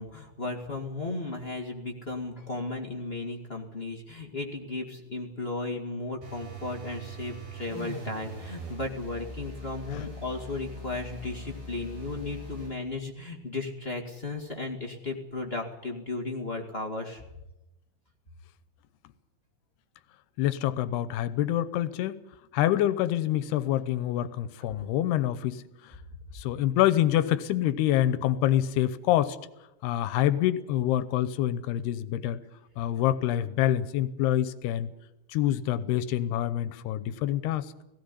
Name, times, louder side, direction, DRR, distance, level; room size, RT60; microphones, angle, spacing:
voice 1, 0.0-17.2, left 2 dB, 25° left, 1 dB, 1.5 m, -35 dB
sound 1, 6.2-12.8, right 1 dB, 75° right, 9.1 m, -42 dB
voice 2, 20.4-22.2 22.5-25.6 26.3-29.4 29.8-32.4 32.8-34.9 35.3-37.7, left 12 dB, 90° left, 15 dB, 2.9 m, -26 dB
18.0 x 17.0 x 9.8 m, 0.92 s
omnidirectional pair, 4.5 m